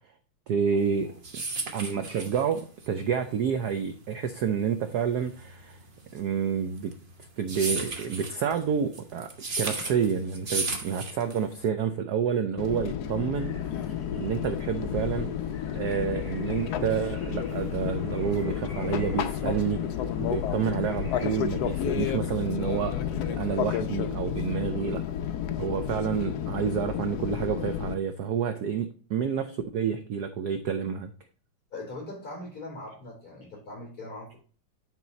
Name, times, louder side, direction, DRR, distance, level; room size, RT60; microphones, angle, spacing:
voice 1, 0.5-1.1 1.3-1.4 1.7-5.8 6.1-6.9 7.4-9.3 9.6-13.5 14.1-15.3 15.7-19.8 20.3-25.0 25.6-31.1, right 7 dB, 70° right, 8 dB, 0.9 m, -29 dB
sound 1, 0.9-11.7, right 3 dB, 35° right, 0.9 m, -35 dB
Fixed-wing aircraft airplane, 12.6-27.9, left 9 dB, 85° left, 0.8 m, -31 dB
sound 2, 13.4-22.1, left 4 dB, 25° left, 4.8 m, -45 dB
voice 2, 31.7-34.4, left 2 dB, 40° left, -1 dB, 4.4 m, -40 dB
9.6 x 4.6 x 4.1 m, 0.40 s
omnidirectional pair, 2.4 m